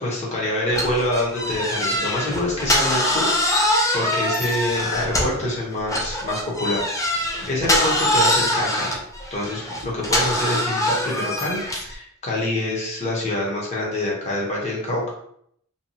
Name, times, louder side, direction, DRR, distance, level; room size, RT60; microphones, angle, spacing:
voice 1, 0.0-6.9 7.5-9.0 9.3-15.1, left 1 dB, 30° left, -4 dB, 0.8 m, -26 dB
sound 1, 0.7-5.5 5.9-11.9, left 1 dB, 15° left, 0.4 m, -23 dB
2.7 x 2.2 x 2.7 m, 0.69 s
head